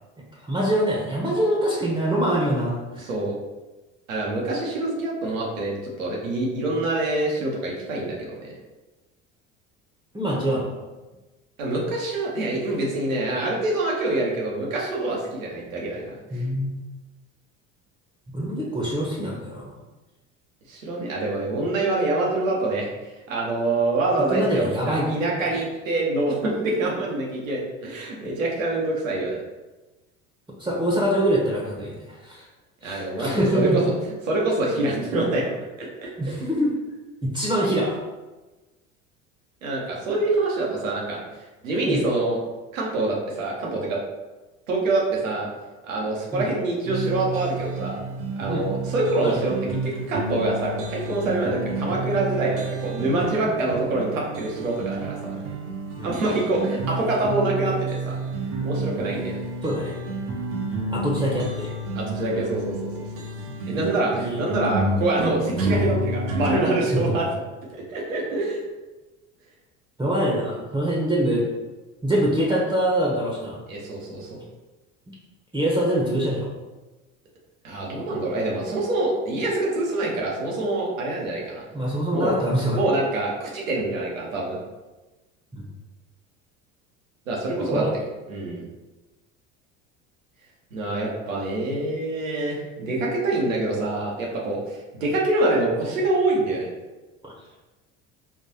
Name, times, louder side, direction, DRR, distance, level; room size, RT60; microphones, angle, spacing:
voice 1, 0.4-3.1 10.1-10.7 16.3-16.8 18.3-19.7 21.2-21.4 24.3-25.1 30.6-32.5 32.8-33.9 36.2-36.7 37.2-38.0 41.9-42.0 46.3-46.5 48.5-48.7 49.2-49.4 56.0-56.1 59.6-59.9 60.9-61.7 64.2-64.4 66.9-67.1 70.0-71.5 72.0-73.6 75.5-76.5 81.7-82.8 85.5-85.7 87.6-87.9 97.2-97.3, right 1 dB, 10° right, -4 dB, 0.7 m, -24 dB
voice 2, 3.0-3.4 4.1-8.5 11.6-16.4 20.7-22.9 23.3-29.4 32.8-33.7 34.3-35.5 35.8-36.1 39.6-41.2 41.6-42.4 42.7-44.0 44.7-45.5 45.8-48.0 48.4-55.3 56.0-58.2 58.6-59.4 61.9-62.9 63.7-67.3 67.7-68.6 73.7-74.4 77.6-81.6 82.1-82.3 82.7-84.6 87.3-87.9 88.3-88.6 90.7-96.7, right 2 dB, 90° right, -3 dB, 0.9 m, -25 dB
sound 1, 46.9-66.5, right 2 dB, 55° right, 0.8 m, -30 dB
3.8 x 2.5 x 2.8 m, 1.2 s
hypercardioid pair, 70°, 38 cm